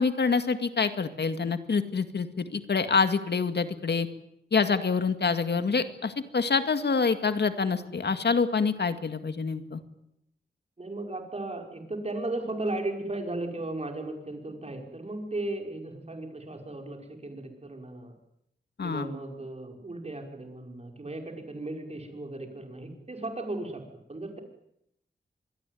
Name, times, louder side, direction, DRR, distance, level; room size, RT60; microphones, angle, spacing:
voice 1, 0.0-4.1 4.5-9.8 18.8-19.1, left 5 dB, 65° left, 9 dB, 2.1 m, -26 dB
voice 2, 10.8-18.1 18.8-24.4, right 2 dB, 35° right, 4 dB, 5.6 m, -36 dB
26.0 x 22.5 x 9.4 m, 0.80 s
wide cardioid pair, 95°, 19 cm